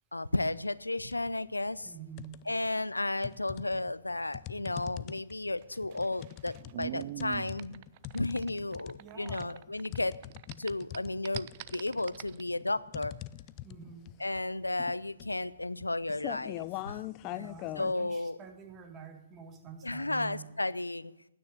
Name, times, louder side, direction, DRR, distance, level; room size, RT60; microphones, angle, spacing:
voice 1, 0.1-1.9 2.5-7.8 8.1-10.2 10.6-13.1 14.2-17.1 17.8-18.4 19.8-21.1, left 2 dB, 90° left, 18 dB, 0.5 m, -33 dB
sound 1, 1.0-1.4 1.8-2.7 3.2-17.9, left 16 dB, 30° left, 0.4 m, -43 dB
voice 2, 1.8-2.4 9.0-9.6 13.6-14.1 17.2-20.6, right 7 dB, 20° right, 5 dB, 1.8 m, -48 dB
sound 2, 5.6-10.0 10.2-12.4, right 15 dB, 40° right, 0.4 m, -43 dB
9.6 x 9.4 x 9.5 m, 0.89 s
figure-of-eight pair, 125°, 0 cm